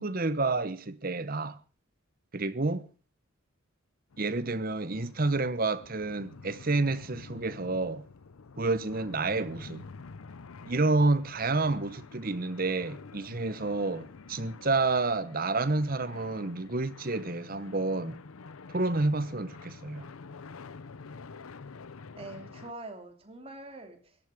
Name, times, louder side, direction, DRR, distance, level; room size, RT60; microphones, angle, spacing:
voice 1, 0.0-1.6 2.3-2.9 4.2-8.0 8.6-9.8 10.6-18.2 18.7-20.1, right 3 dB, 45° right, 1.0 m, -29 dB
sound 1, 4.1-22.7, left 4 dB, 90° left, 0.7 m, -48 dB
voice 2, 22.2-24.2, right 2 dB, 30° right, 2.9 m, -44 dB
17.5 x 13.0 x 5.0 m
head